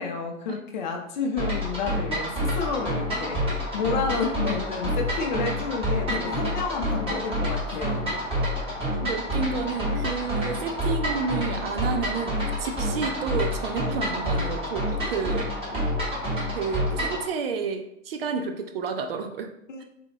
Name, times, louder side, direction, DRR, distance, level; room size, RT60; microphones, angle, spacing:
voice 1, 0.0-8.1 14.3-14.4 19.7-19.8, left 5 dB, 35° left, 3 dB, 0.5 m, -30 dB
sound 1, 1.4-17.2, equal, 15° right, 1.1 m, -28 dB
voice 2, 8.7-15.8 16.5-19.5, right 5 dB, 50° right, 5 dB, 0.5 m, -31 dB
4.1 x 2.3 x 3.1 m, 0.74 s
figure-of-eight pair, 120°, 40 cm